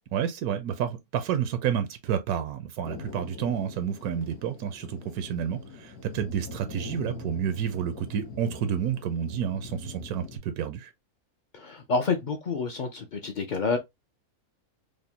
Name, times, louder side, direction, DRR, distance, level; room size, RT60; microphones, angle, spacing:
voice 1, 0.1-10.9, right 9 dB, 85° right, 1.1 m, -30 dB
Thunder, 2.8-10.4, left 3 dB, 85° left, 1.5 m, -42 dB
voice 2, 11.5-13.8, left 4 dB, 60° left, 0.5 m, -28 dB
5.0 x 2.1 x 2.7 m
omnidirectional pair, 1.5 m